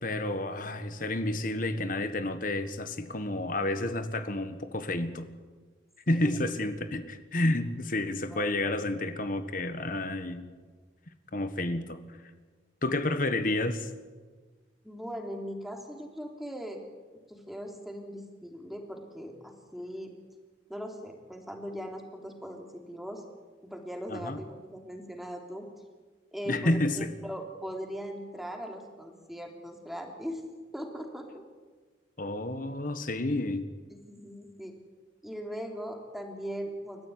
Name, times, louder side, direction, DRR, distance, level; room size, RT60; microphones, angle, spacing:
voice 1, 0.0-5.3 6.1-10.5 11.3-12.0 12.8-13.9 24.1-24.4 26.5-27.1 32.2-33.7, left 1 dB, 45° left, 10 dB, 1.5 m, -30 dB
voice 2, 6.1-6.5 8.3-8.7 14.8-16.8 17.3-20.2 20.7-23.2 23.6-25.7 26.3-30.4 30.7-31.4 33.9-34.7 35.2-37.1, equal, ahead, 2 dB, 3.2 m, -40 dB
29.5 x 14.5 x 9.5 m, 1.4 s
head